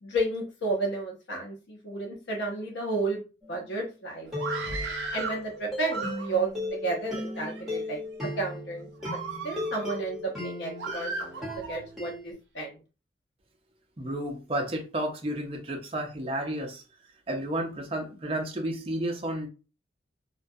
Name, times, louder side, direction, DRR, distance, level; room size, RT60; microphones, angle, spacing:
voice 1, 0.0-4.6 5.1-8.0 8.4-8.9 9.4-12.8, right 2 dB, 80° left, 0.6 m, -32 dB
sound 1, 3.4-3.7 4.3-12.3, left 1 dB, ahead, 1.0 m, -37 dB
Screaming, 4.3-5.4 5.8-6.5 7.2-7.8 8.3-8.5 9.0-10.0 10.8-11.8, right 4 dB, 90° right, 0.6 m, -36 dB
voice 2, 14.0-16.8 17.3-19.5, right 1 dB, 30° right, 0.5 m, -32 dB
2.2 x 2.2 x 2.6 m
head